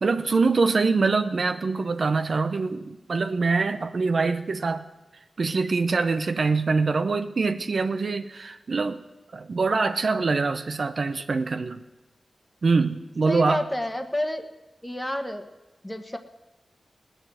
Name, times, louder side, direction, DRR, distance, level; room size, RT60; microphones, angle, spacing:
voice 1, 0.0-4.8 5.4-9.0 9.3-11.8 12.6-13.6, right 4 dB, 65° right, 8 dB, 0.7 m, -24 dB
voice 2, 13.3-14.5 14.8-15.4 15.8-16.2, left 1 dB, 15° left, 6 dB, 1.4 m, -29 dB
18.5 x 6.3 x 7.8 m, 1.1 s
cardioid pair, 45°, 0 cm